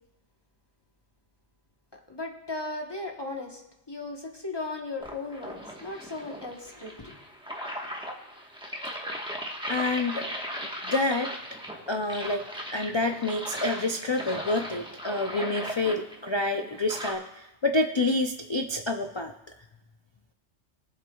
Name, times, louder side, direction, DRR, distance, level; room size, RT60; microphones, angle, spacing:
voice 1, 2.1-7.2, left 2 dB, 20° left, 1 dB, 1.1 m, -37 dB
sound 1, 5.0-17.1, equal, 5° right, 1.1 m, -38 dB
voice 2, 9.7-10.3 10.6-11.3 11.9-12.4 12.7-19.3, left 2 dB, 50° left, 5 dB, 0.3 m, -28 dB
21.5 x 7.7 x 2.3 m, 0.99 s
omnidirectional pair, 1.2 m